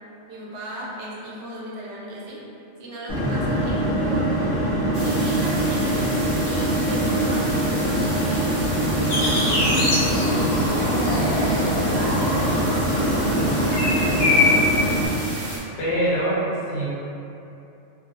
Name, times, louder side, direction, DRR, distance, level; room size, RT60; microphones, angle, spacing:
voice 1, 0.3-2.5 2.8-4.5 5.0-10.4 10.8-12.7 13.4-14.6, right 1 dB, 75° right, -6 dB, 0.9 m, -36 dB
sound 1, 3.1-15.1, right 1 dB, 35° left, 0.6 m, -23 dB
voice 2, 3.2-3.7 15.8-16.9, right 1 dB, 65° left, -8 dB, 0.8 m, -25 dB
sound 2, 4.9-15.6, right 1 dB, 45° right, 0.4 m, -34 dB
sound 3, 9.0-14.6, left 2 dB, 90° left, 1.1 m, -24 dB
2.3 x 2.3 x 2.7 m, 2.8 s
omnidirectional pair, 1.3 m